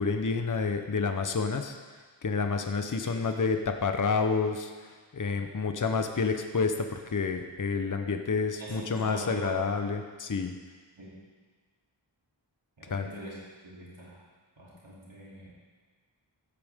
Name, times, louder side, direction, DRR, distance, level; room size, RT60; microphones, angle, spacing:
voice 1, 0.0-1.8 2.2-4.7 5.1-10.5 12.9-13.1, left 4 dB, 40° left, 6 dB, 0.8 m, -29 dB
voice 2, 8.6-9.6 11.0-11.2 12.8-13.4 13.6-14.2 14.6-15.5, right 1 dB, 70° right, -7 dB, 3.2 m, -42 dB
15.5 x 8.6 x 3.6 m, 1.4 s
wide cardioid pair, 60°, 48 cm